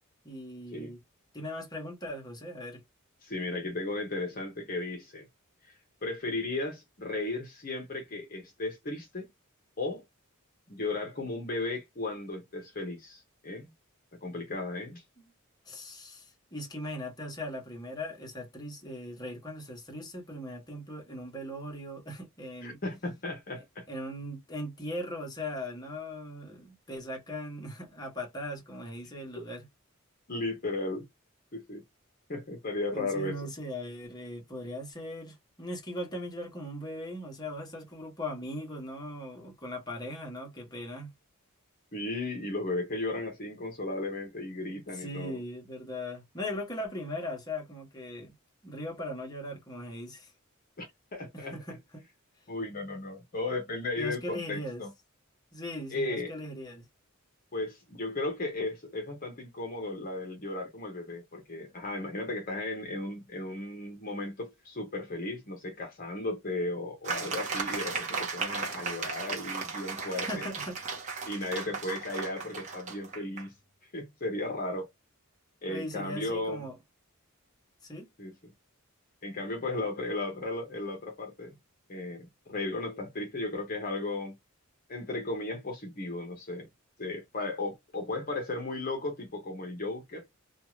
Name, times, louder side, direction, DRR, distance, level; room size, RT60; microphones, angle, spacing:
voice 1, 0.2-1.0 1.3-2.8 15.2-15.3 15.7-22.8 23.6-29.7 32.9-41.1 44.6-48.3 48.6-50.3 51.3-52.0 54.0-54.8 55.5-56.8 70.0-70.8 75.7-76.8 77.8-78.1, left 1 dB, 20° left, 1.1 m, -39 dB
voice 2, 3.2-5.3 5.6-9.3 9.8-10.0 10.7-13.7 14.2-15.0 22.6-23.8 29.3-29.4 30.3-31.1 31.5-31.8 32.3-33.4 41.9-45.4 50.8-50.9 51.1-51.6 52.5-54.9 55.9-56.3 57.5-70.5 71.3-73.5 73.9-74.9 75.6-76.7 78.2-78.5 79.2-81.5 81.9-84.3 84.9-86.7 87.0-90.3, left 2 dB, 40° left, 0.8 m, -35 dB
sound 1, 67.0-73.5, right 4 dB, 35° right, 0.9 m, -36 dB
2.7 x 2.3 x 3.0 m
head